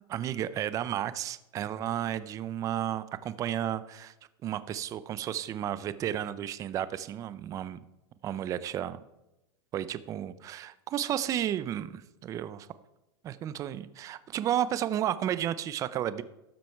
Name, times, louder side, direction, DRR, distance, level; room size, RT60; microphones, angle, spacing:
voice 1, 0.1-4.1 4.4-7.8 8.2-9.0 9.7-12.7 13.2-16.2, right 11 dB, 25° right, 15 dB, 0.5 m, -32 dB
12.5 x 7.7 x 4.5 m, 0.93 s
supercardioid pair, 145°, 14 cm